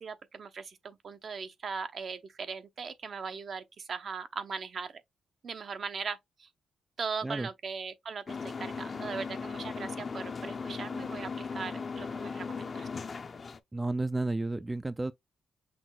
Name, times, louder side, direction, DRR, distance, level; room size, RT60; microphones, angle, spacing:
voice 1, 0.0-4.9 5.4-6.5 7.0-12.9, right 5 dB, 55° right, 0.7 m, -39 dB
sound 1, 8.3-13.6, left 5 dB, 45° left, 0.5 m, -38 dB
voice 2, 13.7-15.1, right 2 dB, 15° right, 0.3 m, -32 dB
6.0 x 2.1 x 3.8 m
cardioid pair, 85°, 0 cm